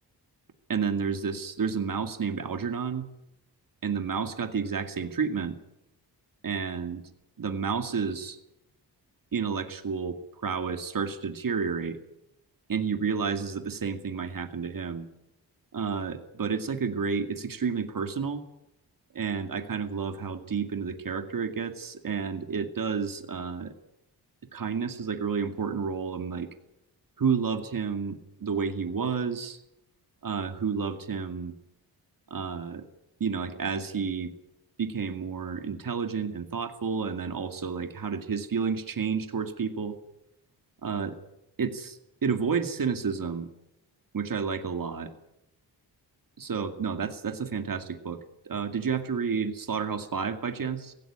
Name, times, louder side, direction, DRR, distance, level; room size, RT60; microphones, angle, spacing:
voice 1, 0.7-3.1 3.8-5.6 6.4-7.0 7.4-8.4 9.3-10.2 10.4-12.0 12.7-15.1 15.7-18.4 19.1-23.7 24.5-26.5 27.2-29.6 30.2-31.5 32.3-32.8 33.2-34.3 34.8-40.0 40.8-41.1 41.6-43.5 44.1-45.1 46.4-48.2 48.5-50.9, right 6 dB, 55° right, 7 dB, 2.2 m, -30 dB
17.0 x 16.5 x 9.8 m, 0.86 s
cardioid pair, 80°, 41 cm